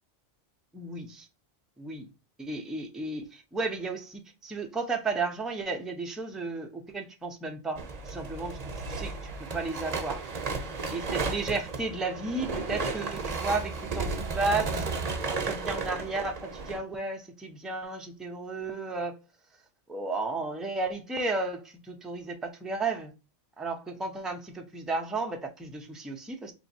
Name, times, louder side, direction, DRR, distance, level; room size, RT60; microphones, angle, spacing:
voice 1, 0.7-1.3 1.8-2.1 2.4-8.6 8.9-10.2 10.9-15.0 15.3-19.2 19.9-23.1 23.6-26.5, right 3 dB, ahead, 0.4 m, -33 dB
sound 1, 7.8-16.8, right 4 dB, 40° right, 0.7 m, -33 dB
4.4 x 3.0 x 2.6 m
omnidirectional pair, 1.2 m